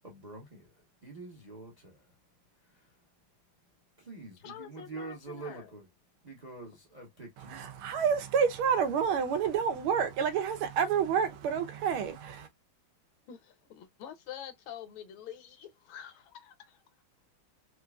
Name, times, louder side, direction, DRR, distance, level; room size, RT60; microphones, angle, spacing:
voice 1, 0.0-2.2 2.6-3.1 4.0-5.9 6.2-7.7, right 3 dB, 45° right, 0.5 m, -46 dB
voice 2, 4.4-5.7 13.3-16.8, left 9 dB, 75° left, 1.5 m, -46 dB
voice 3, 7.5-12.5, right 7 dB, 85° right, 1.6 m, -29 dB
4.5 x 2.5 x 2.2 m
omnidirectional pair, 2.3 m